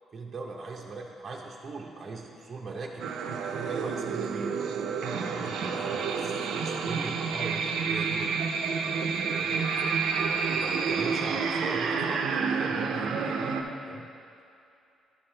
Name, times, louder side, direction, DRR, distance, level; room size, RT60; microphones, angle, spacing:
voice 1, 0.1-4.6 5.2-6.3 6.6-9.8 10.1-13.6 13.8-14.1, right 3 dB, 40° right, -1 dB, 0.7 m, -40 dB
sound 1, 3.0-13.6, right 5 dB, 80° right, 0.5 m, -29 dB
11.0 x 4.2 x 3.3 m, 2.6 s
cardioid pair, 90°, 0 cm